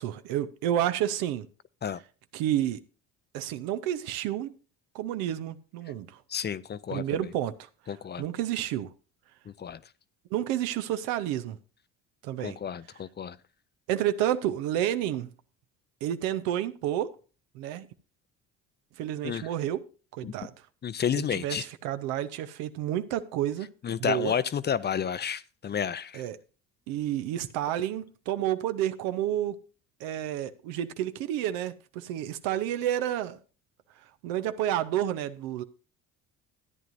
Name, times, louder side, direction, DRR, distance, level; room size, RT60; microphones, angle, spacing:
voice 1, 0.0-1.5 2.3-2.8 3.3-4.6 4.9-6.2 6.9-8.9 10.3-11.6 12.2-12.6 13.9-15.3 16.0-17.1 17.5-17.9 19.0-19.8 20.1-20.5 21.2-23.7 24.0-24.3 26.1-26.4 26.9-29.6 30.0-33.4 34.2-35.6, right 11 dB, 85° right, 0.8 m, -30 dB
voice 2, 6.3-7.0 7.9-8.2 9.6-9.8 12.4-13.4 19.2-19.5 20.2-20.3 20.8-21.6 23.8-26.2, left 8 dB, 30° left, 0.5 m, -31 dB
13.5 x 9.4 x 2.6 m
supercardioid pair, 75°, 35 cm